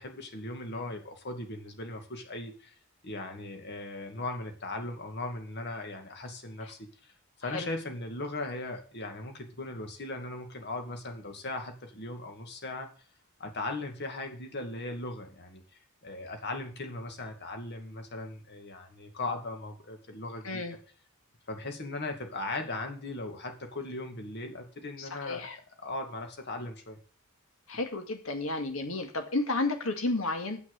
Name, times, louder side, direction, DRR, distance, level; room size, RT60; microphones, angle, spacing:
voice 1, 0.0-2.7 3.0-7.1 7.4-12.9 13.4-15.6 16.0-20.6 21.5-25.5 25.8-27.0, left 2 dB, 50° left, 5 dB, 2.3 m, -38 dB
voice 2, 20.4-20.8 25.0-25.6 27.7-30.6, left 2 dB, 65° left, 5 dB, 2.2 m, -32 dB
8.5 x 6.2 x 8.2 m, 0.40 s
head